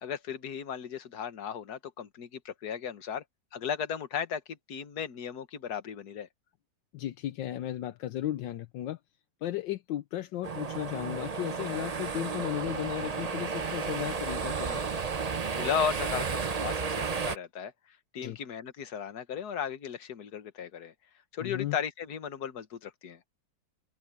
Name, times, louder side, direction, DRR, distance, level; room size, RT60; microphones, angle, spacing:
voice 1, 0.0-3.2 3.5-6.3 15.5-17.7 18.1-20.9 21.3-23.2, left 7 dB, 55° left, 1.8 m, -35 dB
voice 2, 6.9-9.0 9.4-14.8 18.2-18.4 21.4-21.8, left 13 dB, 75° left, 1.4 m, -35 dB
sound 1, 10.4-17.4, right 5 dB, 85° right, 0.3 m, -33 dB
omnidirectional pair, 2.1 m